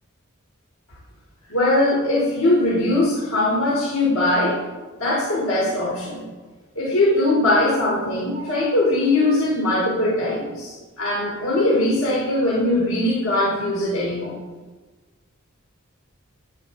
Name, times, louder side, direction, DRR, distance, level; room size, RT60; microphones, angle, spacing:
voice 1, 1.5-4.6 5.0-6.2 6.8-14.4, left 1 dB, 75° left, -6 dB, 3.8 m, -21 dB
13.5 x 11.5 x 4.0 m, 1.2 s
head